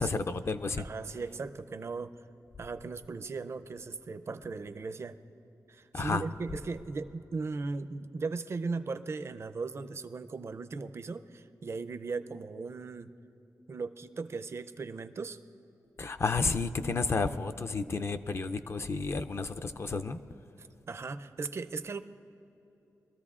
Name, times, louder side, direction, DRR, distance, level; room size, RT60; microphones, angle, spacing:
voice 1, 0.0-0.8 5.9-6.2 16.0-20.2, left 4 dB, 40° left, 9 dB, 0.4 m, -31 dB
voice 2, 0.8-2.2 2.6-5.2 5.7-13.1 13.7-15.4 20.6-22.0, right 4 dB, 45° right, 12 dB, 0.4 m, -38 dB
23.0 x 14.0 x 2.4 m, 3.0 s
wide cardioid pair, 140°, 7 cm